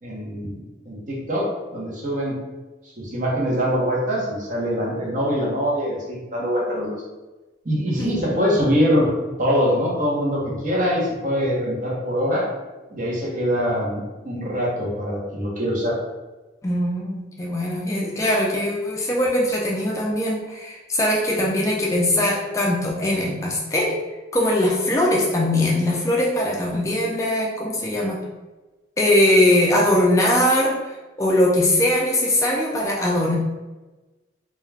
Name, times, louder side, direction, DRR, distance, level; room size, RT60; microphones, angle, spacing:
voice 1, 0.0-2.4 3.0-7.0 7.6-9.1 9.4-12.5 12.9-16.0, equal, 45° right, -4 dB, 0.7 m, -23 dB
voice 2, 16.6-24.0 24.3-28.2 29.0-30.7 31.2-33.4, left 1 dB, 15° left, -3 dB, 0.3 m, -21 dB
2.3 x 2.2 x 3.2 m, 1.2 s
head